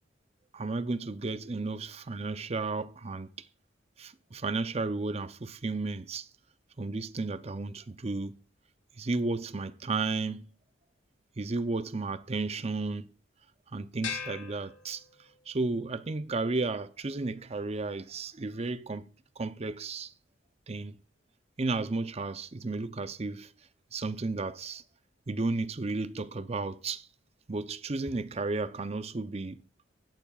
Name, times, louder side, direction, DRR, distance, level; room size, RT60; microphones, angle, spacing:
voice 1, 0.5-3.3 4.0-6.3 6.8-8.4 9.0-10.5 11.4-13.1 13.7-15.0 15.5-20.1 20.7-21.0 21.6-23.5 23.9-24.8 25.3-27.1 27.5-29.6, right 3 dB, 35° right, 0.6 m, -33 dB
sound 1, 14.0-15.5, left 7 dB, 80° left, 3.4 m, -40 dB
17.0 x 14.0 x 2.4 m
head